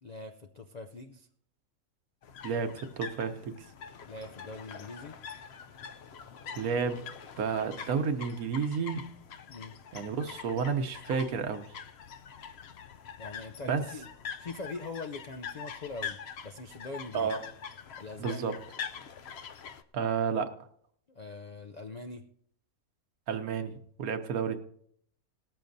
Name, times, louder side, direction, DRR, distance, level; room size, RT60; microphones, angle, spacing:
voice 1, 0.0-1.3 4.1-5.2 9.5-9.7 13.2-14.1 14.4-16.2 16.4-17.3 18.0-18.5 21.1-22.2, left 3 dB, 80° left, 6 dB, 0.3 m, -42 dB
sound 1, 2.2-19.8, left 7 dB, 60° left, 0.7 m, -44 dB
voice 2, 2.4-3.7 6.5-7.0 7.4-9.0 9.9-11.7 13.6-13.8 17.1-17.4 18.2-18.6 19.9-20.5 23.3-24.6, right 6 dB, 75° right, 8 dB, 1.3 m, -31 dB
18.5 x 13.5 x 2.6 m, 0.67 s
omnidirectional pair, 1.6 m